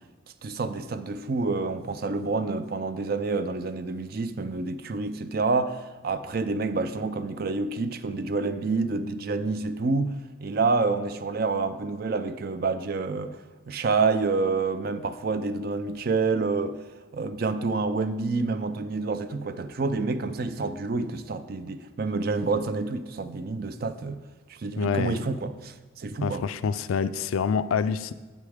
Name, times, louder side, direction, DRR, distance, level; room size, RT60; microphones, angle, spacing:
voice 1, 0.4-13.4 13.7-16.8 17.1-24.2 24.5-26.4, right 3 dB, 45° right, 0.4 m, -28 dB
voice 2, 24.8-25.2 26.2-28.1, left 6 dB, 85° left, 0.4 m, -27 dB
8.5 x 8.1 x 3.5 m
head